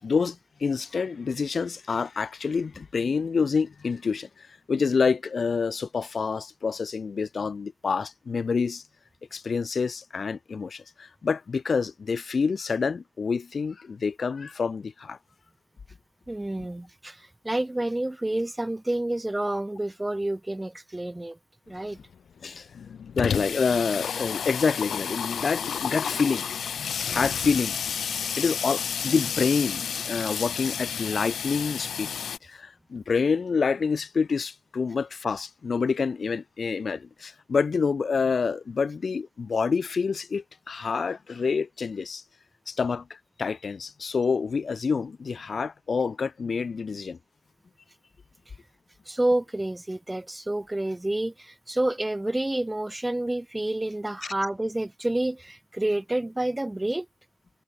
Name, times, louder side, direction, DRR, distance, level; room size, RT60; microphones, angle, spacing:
voice 1, 0.0-8.8 9.3-15.2 22.4-22.7 23.1-26.4 27.1-27.8 28.4-32.1 32.4-42.2 42.7-43.0 43.4-47.2, left 5 dB, 40° left, 5.1 m, -27 dB
voice 2, 16.3-21.4 21.7-22.0 49.1-57.1, right 1 dB, 10° right, 4.2 m, -29 dB
Water tap faucet / Sink (filling or washing), 21.8-21.9 22.1-22.2 22.5-32.4, left 7 dB, 60° left, 5.9 m, -31 dB
cardioid pair, 120°, 0 cm